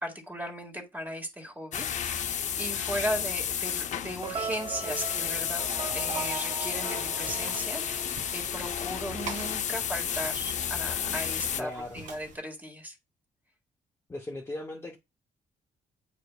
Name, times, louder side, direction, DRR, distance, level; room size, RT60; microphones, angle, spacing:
voice 1, 0.0-13.0, equal, 10° right, 1.8 m, -37 dB
sound 1, 1.7-11.6, left 8 dB, 60° left, 0.7 m, -32 dB
sound 2, 4.2-8.5, right 6 dB, 35° right, 0.6 m, -38 dB
sound 3, 6.6-12.4, right 5 dB, 75° right, 2.8 m, -46 dB
voice 2, 11.6-12.0 14.1-15.0, left 2 dB, 20° left, 0.8 m, -38 dB
9.2 x 4.9 x 2.3 m
cardioid pair, 150°, 14 cm